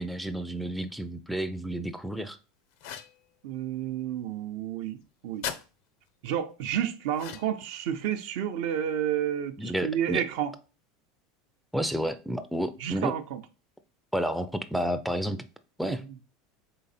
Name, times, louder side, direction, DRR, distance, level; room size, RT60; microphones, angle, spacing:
voice 1, 0.0-2.4 9.6-10.2 11.7-13.1 14.1-15.4 15.8-16.0, equal, ahead, 0.4 m, -30 dB
sound 1, 2.8-3.2 5.4-5.6 7.1-7.7, left 8 dB, 70° left, 0.6 m, -37 dB
voice 2, 3.4-5.5 6.2-10.5 12.8-13.4 15.8-16.0, right 10 dB, 70° right, 0.6 m, -30 dB
3.9 x 3.3 x 4.1 m
supercardioid pair, 115°, 0 cm